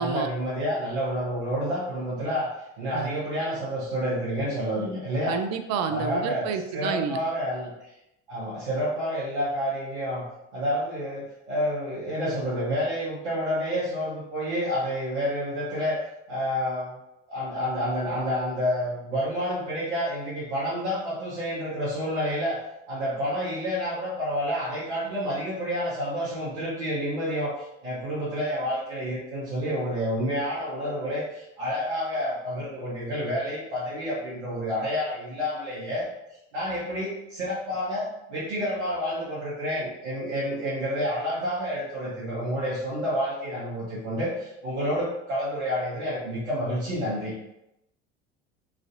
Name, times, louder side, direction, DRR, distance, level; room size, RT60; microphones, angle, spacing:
voice 1, 0.0-2.5 2.8-5.4 5.9-7.7 8.3-10.3 10.5-16.0 16.3-17.0 17.3-22.6 22.9-36.0 36.5-47.3, equal, 80° right, -8 dB, 0.9 m, -29 dB
voice 2, 5.3-7.2, right 6 dB, 50° right, 8 dB, 0.4 m, -29 dB
3.0 x 2.5 x 2.5 m, 0.86 s
hypercardioid pair, 65°, 34 cm